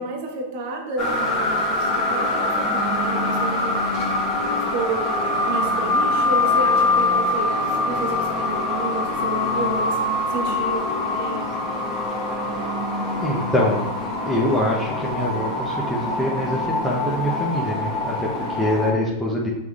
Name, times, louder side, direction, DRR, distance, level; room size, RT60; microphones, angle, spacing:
voice 1, 0.0-3.7 4.1-4.2 4.7-5.2 5.4-11.5 12.4-13.0 18.4-18.7, right 3 dB, 60° right, 2 dB, 1.0 m, -31 dB
sound 1, 1.0-18.9, left 2 dB, 45° left, 1.0 m, -24 dB
voice 2, 13.2-13.8 14.2-18.3 18.6-19.5, equal, 5° left, -5 dB, 0.7 m, -24 dB
6.0 x 3.5 x 2.4 m, 0.96 s
hypercardioid pair, 125°, 0 cm